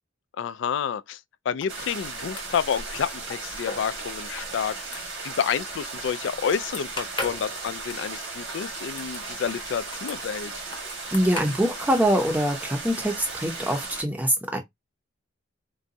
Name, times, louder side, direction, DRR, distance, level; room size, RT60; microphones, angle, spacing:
voice 1, 0.4-1.2 1.5-10.5, left 7 dB, 65° left, 0.3 m, -29 dB
sound 1, 1.6-13.5, left 2 dB, 25° left, 0.9 m, -42 dB
sound 2, 1.7-14.0, right 3 dB, 70° right, 1.4 m, -36 dB
voice 2, 11.1-14.6, right 1 dB, 10° right, 0.6 m, -24 dB
3.8 x 2.2 x 2.6 m
head